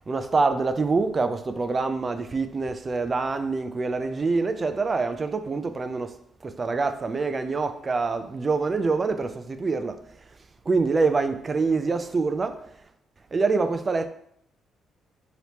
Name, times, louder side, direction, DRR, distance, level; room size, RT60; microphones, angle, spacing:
voice 1, 0.1-6.2 6.4-10.0 10.7-12.6 13.3-14.1, right 4 dB, 35° right, 0.3 m, -25 dB
3.2 x 2.9 x 2.9 m
cardioid pair, 90°, 0 cm